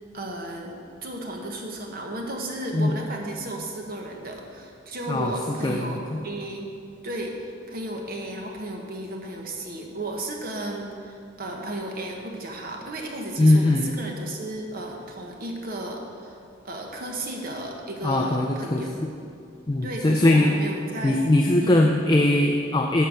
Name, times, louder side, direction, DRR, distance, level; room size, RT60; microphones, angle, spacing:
voice 1, 0.1-6.7 7.0-7.4 7.7-16.4 16.6-19.0 19.8-21.2 21.6-21.9, right 1 dB, 50° right, 1 dB, 1.2 m, -34 dB
voice 2, 5.1-6.2 13.4-13.9 18.0-18.8 19.7-20.5 21.0-23.0, left 1 dB, 20° left, 2 dB, 0.4 m, -21 dB
11.0 x 4.5 x 6.8 m, 2.4 s
head